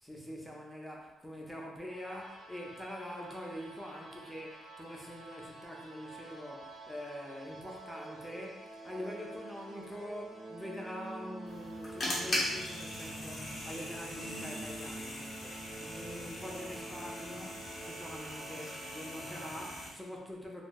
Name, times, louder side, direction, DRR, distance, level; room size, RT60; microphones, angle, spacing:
voice 1, 0.0-20.6, left 1 dB, 5° left, -1 dB, 0.5 m, -44 dB
sound 1, 1.9-19.8, right 2 dB, 45° right, 0.7 m, -48 dB
sound 2, 11.5-19.9, left 1 dB, 45° left, 0.9 m, -40 dB
2.1 x 2.0 x 3.4 m, 1.1 s
cardioid pair, 90°, 0 cm